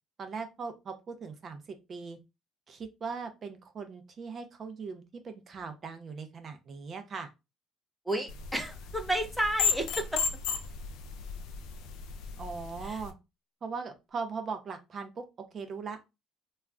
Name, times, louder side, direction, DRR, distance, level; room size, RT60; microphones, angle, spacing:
voice 1, 0.2-2.2 2.7-7.3 12.4-13.1 13.6-15.2 15.5-16.1, right 5 dB, 45° right, 7 dB, 0.5 m, -39 dB
voice 2, 8.1-10.2 12.8-13.0, right 1 dB, ahead, 5 dB, 0.6 m, -31 dB
sound 1, 8.3-13.1, left 6 dB, 75° left, 0.4 m, -35 dB
2.2 x 2.2 x 3.6 m, 0.24 s
supercardioid pair, 90°, 0 cm